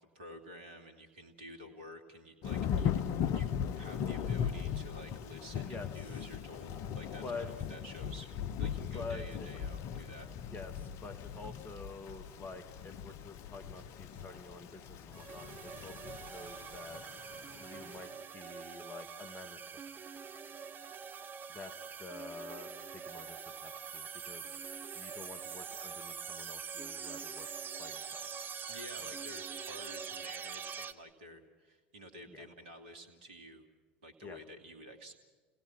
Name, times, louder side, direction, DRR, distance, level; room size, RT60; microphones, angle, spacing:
voice 1, 0.0-3.1 3.3-8.3 8.6-10.3 28.7-33.6 34.0-35.1, equal, 70° right, 5 dB, 2.5 m, -51 dB
Thunder / Rain, 2.4-18.0, left 8 dB, 55° left, 0.9 m, -38 dB
voice 2, 8.8-9.5 10.4-17.0 17.6-19.8 21.5-24.4 24.9-27.5 27.8-28.3 29.0-29.2 32.3-32.4 34.2-34.4, left 3 dB, 30° left, 7 dB, 2.6 m, -48 dB
sound 1, 15.1-30.9, right 6 dB, 30° right, 1.1 m, -44 dB
30.0 x 17.0 x 5.9 m, 1.4 s
figure-of-eight pair, 75°, 6 cm